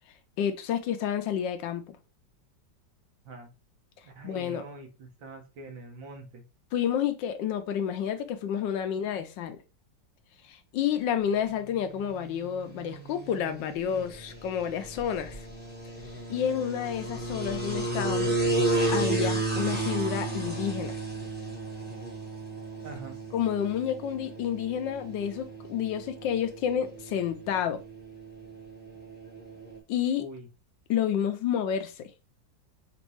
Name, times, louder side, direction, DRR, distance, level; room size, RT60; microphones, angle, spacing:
voice 1, 0.4-2.0 4.2-4.6 6.7-9.6 10.4-15.5 16.3-18.6 18.9-21.0 23.3-27.8 29.9-30.2 30.9-32.1, left 9 dB, 75° left, 1.3 m, -30 dB
voice 2, 4.0-6.4 22.8-23.2 30.2-30.5, right 2 dB, 85° right, 1.9 m, -44 dB
sound 1, 11.7-29.8, right 2 dB, 10° right, 0.8 m, -33 dB
5.2 x 2.6 x 3.1 m
omnidirectional pair, 2.1 m